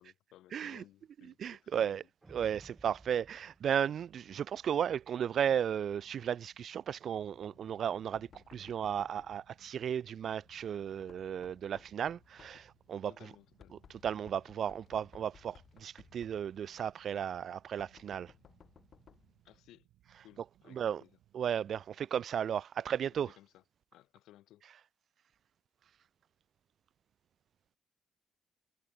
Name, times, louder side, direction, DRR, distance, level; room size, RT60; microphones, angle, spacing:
voice 1, 0.0-2.0 12.5-12.6 13.0-13.8 19.4-19.9 20.2-21.1 23.3-23.6 23.9-24.6, left 14 dB, 85° left, 6.0 m, -59 dB
voice 2, 0.5-0.8 1.2-2.0 2.3-13.3 13.9-18.3 20.7-21.0 21.3-23.3, right 9 dB, 60° right, 0.3 m, -35 dB
sound 1, 2.2-4.7, right 3 dB, 20° right, 7.7 m, -58 dB
sound 2, 3.8-22.0, right 13 dB, 85° right, 3.6 m, -69 dB
Knock, 7.2-19.4, left 7 dB, 55° left, 7.8 m, -62 dB
cardioid pair, 90°, 0 cm